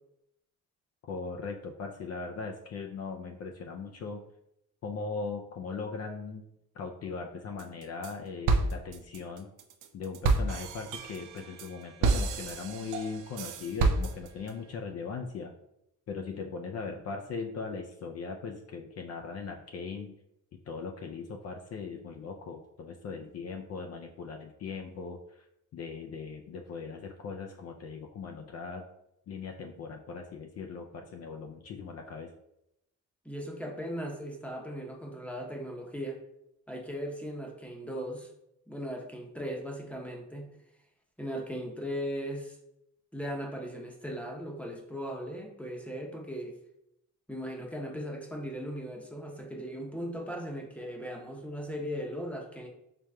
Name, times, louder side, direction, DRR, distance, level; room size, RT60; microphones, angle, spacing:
voice 1, 1.0-4.2 4.8-6.4 6.8-9.5 9.9-15.5 16.1-20.1 20.7-25.4 25.7-28.9 29.3-32.3, left 4 dB, 55° left, 2 dB, 0.4 m, -39 dB
sound 1, 7.6-8.1 8.5-14.5, right 3 dB, 80° right, 0.5 m, -29 dB
voice 2, 33.2-36.2 36.7-38.3 38.7-40.5 41.2-42.6 43.1-46.6 47.3-52.7, equal, 5° left, 0 dB, 0.7 m, -38 dB
5.0 x 3.0 x 2.2 m, 0.80 s
cardioid pair, 90°, 31 cm